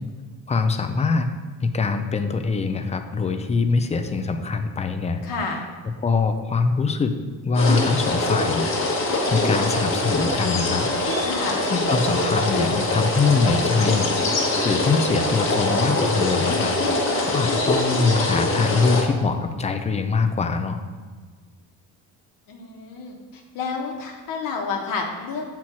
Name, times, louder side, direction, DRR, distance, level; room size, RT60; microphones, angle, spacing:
voice 1, 0.5-1.3 1.6-5.2 5.5-5.6 6.0-7.2 7.4-8.7 9.3-10.9 11.7-16.7 17.2-20.8, left 4 dB, 20° left, 8 dB, 0.4 m, -23 dB
voice 2, 5.2-5.7 11.2-11.6 22.5-25.4, left 4 dB, 60° left, 1 dB, 1.2 m, -30 dB
sound 1, 7.5-19.0, left 2 dB, 35° left, 1.2 m, -23 dB
7.7 x 4.4 x 5.9 m, 1.4 s
cardioid pair, 150°, 37 cm